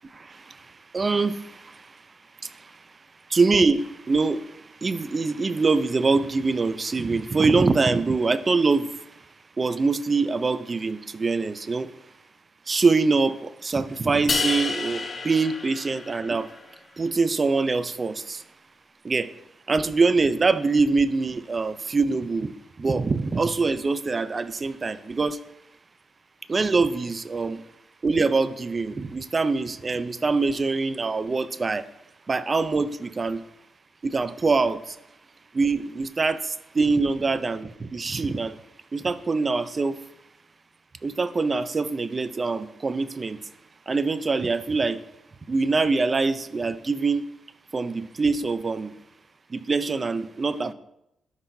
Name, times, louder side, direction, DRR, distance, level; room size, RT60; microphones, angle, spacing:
voice 1, 0.1-0.6 0.9-1.6 2.4-2.5 3.3-4.5 4.8-8.9 9.6-11.9 12.7-16.5 17.0-18.4 19.0-19.3 19.7-25.4 26.5-27.6 28.0-31.8 32.3-33.4 34.0-35.0 35.5-38.6 38.9-40.0 41.0-43.4 43.9-45.0 45.5-47.2 47.7-48.9 49.5-50.7, right 4 dB, 40° right, 14 dB, 0.5 m, -24 dB
sound 1, 14.3-16.6, left 4 dB, 45° left, 0.9 m, -29 dB
12.5 x 5.6 x 2.7 m, 0.81 s
cardioid pair, 60°, 0 cm